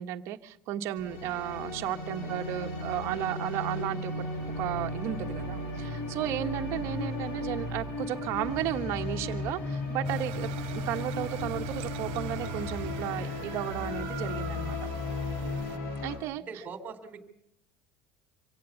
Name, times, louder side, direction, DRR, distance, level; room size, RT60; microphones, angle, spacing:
voice 1, 0.0-4.3 4.6-14.8 16.0-16.4, right 13 dB, 50° right, 4 dB, 1.4 m, -34 dB
sound 1, 1.0-16.2, left 2 dB, 55° left, 7.0 m, -35 dB
sound 2, 10.0-15.8, right 10 dB, 75° right, 0.8 m, -41 dB
voice 2, 15.4-15.8 16.3-17.2, right 5 dB, 25° right, 8 dB, 3.2 m, -44 dB
25.5 x 17.0 x 7.1 m, 0.74 s
cardioid pair, 165°, 6 cm